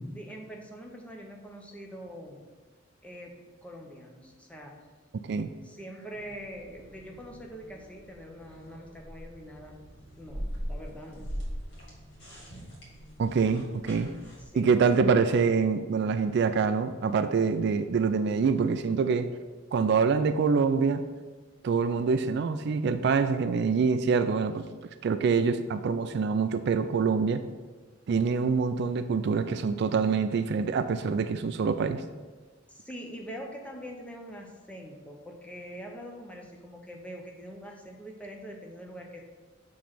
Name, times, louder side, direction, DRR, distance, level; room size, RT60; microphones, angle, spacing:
voice 1, 0.1-2.5 3.0-4.8 5.6-9.7 10.2-11.3 14.4-14.7 32.7-39.2, equal, 5° left, 0 dB, 0.8 m, -44 dB
voice 2, 5.1-5.5 13.2-14.1 14.6-19.3 19.7-21.0 21.6-24.7 25.0-27.4 28.1-32.0, right 5 dB, 60° right, 10 dB, 0.3 m, -25 dB
sound 1, 6.1-14.5, equal, 60° left, 2.0 m, -41 dB
6.9 x 3.1 x 5.8 m, 1.3 s
head